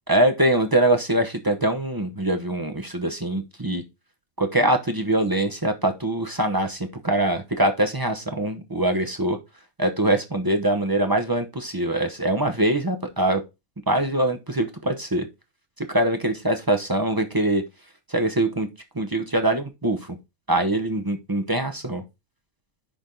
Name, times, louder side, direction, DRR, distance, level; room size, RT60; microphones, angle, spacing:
voice 1, 0.1-3.8 4.4-6.8 7.0-9.4 9.8-13.4 13.9-15.3 15.9-17.6 18.1-18.7 19.0-20.0 20.5-22.0, right 1 dB, 20° right, 6 dB, 0.6 m, -23 dB
10.0 x 3.5 x 3.8 m, 0.23 s
omnidirectional pair, 1.5 m